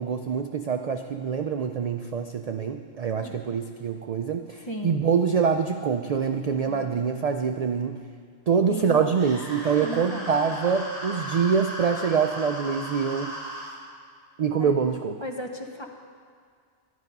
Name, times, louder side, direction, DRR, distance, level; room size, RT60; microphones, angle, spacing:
voice 1, 0.0-8.0 8.5-13.3 14.4-15.2, right 6 dB, 60° right, 6 dB, 0.4 m, -25 dB
voice 2, 4.7-5.0 6.7-6.9 8.5-9.1 9.6-10.4 14.6-14.7 15.2-15.9, equal, 25° left, 2 dB, 0.8 m, -36 dB
sound 1, 9.1-13.7, equal, 35° right, 2.5 m, -36 dB
11.0 x 11.0 x 5.4 m, 2.1 s
omnidirectional pair, 1.2 m